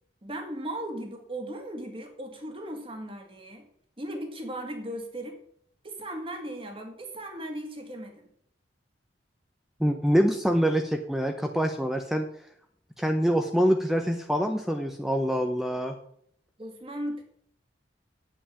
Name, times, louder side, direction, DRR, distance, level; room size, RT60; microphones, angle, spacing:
voice 1, 0.2-3.7 4.0-5.4 5.8-8.3 16.6-17.2, right 1 dB, 30° right, 4 dB, 2.2 m, -37 dB
voice 2, 9.8-12.2 13.0-16.0, equal, ahead, 4 dB, 0.8 m, -25 dB
8.7 x 7.9 x 8.6 m, 0.66 s
head